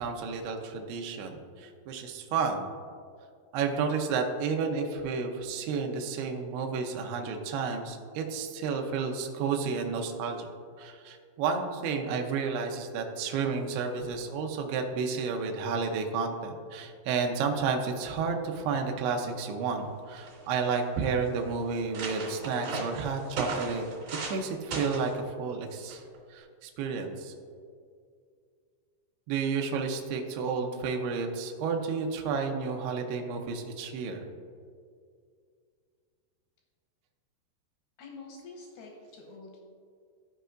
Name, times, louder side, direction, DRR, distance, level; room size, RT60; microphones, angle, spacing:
voice 1, 0.0-2.7 3.5-10.5 10.8-23.8 24.3-26.0 26.3-27.3 29.3-34.3, right 5 dB, 85° right, 3 dB, 2.3 m, -31 dB
sound 1, 19.8-19.9 20.2-20.8 21.4-21.5 21.7-24.4 24.7-25.1 25.9-26.2, right 3 dB, 50° right, 2.9 m, -37 dB
voice 2, 38.0-39.6, left 3 dB, 80° left, 0 dB, 2.4 m, -47 dB
14.5 x 5.4 x 2.5 m, 2.2 s
omnidirectional pair, 5.6 m